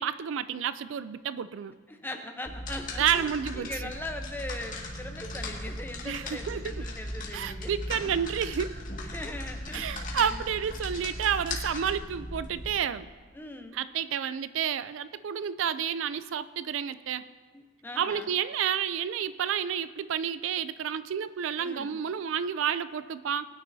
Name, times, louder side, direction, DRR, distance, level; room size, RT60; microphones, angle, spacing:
voice 1, 0.0-1.7 3.0-3.7 6.0-6.6 7.3-8.7 9.7-13.1 13.7-17.2 18.0-23.5, right 8 dB, 70° right, 14 dB, 0.4 m, -30 dB
voice 2, 1.9-8.1 8.9-9.8 10.1-10.4 13.3-13.8 17.5-18.3 21.6-22.0, left 1 dB, 10° left, 5 dB, 0.8 m, -40 dB
sound 1, 2.4-12.7, left 1 dB, 40° left, 1.9 m, -37 dB
20.0 x 9.9 x 2.7 m, 1.5 s
head